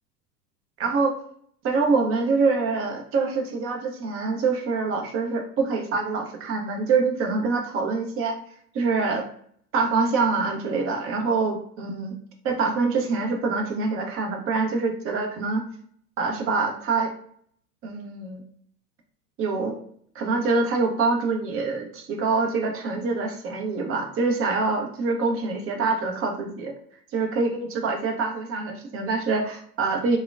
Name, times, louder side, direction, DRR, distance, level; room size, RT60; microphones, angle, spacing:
voice 1, 0.8-1.1 1.6-8.3 8.7-9.3 9.7-12.1 12.4-15.6 16.2-17.1 17.8-18.4 19.4-19.7 20.1-26.7 27.1-30.2, right 4 dB, 25° right, 3 dB, 0.7 m, -25 dB
3.5 x 2.2 x 2.3 m, 0.62 s
hypercardioid pair, 95°, 50 cm